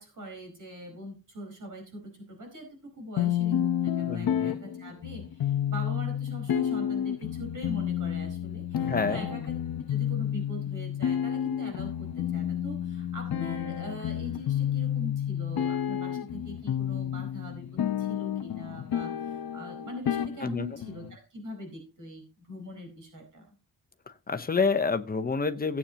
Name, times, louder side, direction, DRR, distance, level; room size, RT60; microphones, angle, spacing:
voice 1, 0.0-9.5 9.9-23.4, equal, 55° right, 1 dB, 4.7 m, -42 dB
sound 1, 3.2-21.1, left 10 dB, 80° left, 0.9 m, -30 dB
voice 2, 4.1-4.6 8.8-9.3 20.4-20.7 24.3-25.8, left 4 dB, 25° left, 10 dB, 0.9 m, -28 dB
17.0 x 8.5 x 2.9 m, 0.33 s
wide cardioid pair, 155°, 36 cm